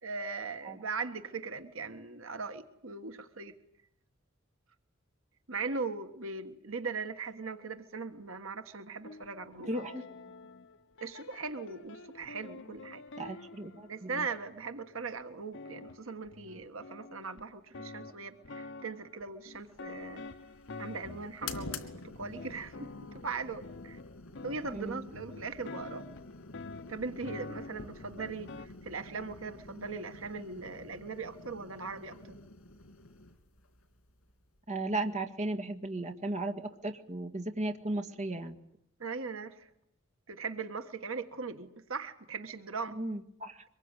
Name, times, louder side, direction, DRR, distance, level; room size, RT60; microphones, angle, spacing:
voice 1, 0.0-3.5 5.5-9.7 11.0-13.0 13.9-20.2 20.8-24.0 24.4-26.0 26.9-32.3 39.0-39.7 40.3-43.0, right 4 dB, 70° right, 8 dB, 1.6 m, -39 dB
sound 1, 9.0-14.6 15.2-15.3 15.5-28.7, left 3 dB, 60° left, 1.0 m, -47 dB
voice 2, 9.7-10.1 13.2-14.3 24.7-25.1 34.7-38.6 43.0-43.6, right 2 dB, 35° right, 6 dB, 1.9 m, -36 dB
sound 2, 19.6-34.9, left 3 dB, 85° left, 3.1 m, -49 dB
24.5 x 22.0 x 9.9 m, 0.75 s
head